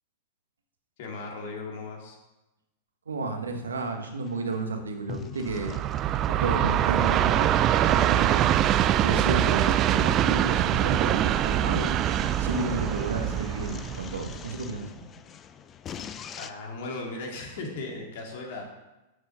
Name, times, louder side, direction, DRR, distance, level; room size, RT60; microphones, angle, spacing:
voice 1, 1.0-2.2 16.4-18.7, left 3 dB, 60° left, 0 dB, 2.6 m, -37 dB
voice 2, 3.1-5.8 6.3-7.5 7.8-8.7 9.0-14.9, right 3 dB, 85° right, 5 dB, 1.3 m, -32 dB
sound 1, 3.4-16.5, left 8 dB, 30° left, 0.5 m, -43 dB
Train, 5.5-14.7, right 12 dB, 35° right, 0.4 m, -24 dB
7.5 x 6.2 x 6.4 m, 0.99 s
hypercardioid pair, 100°, 0 cm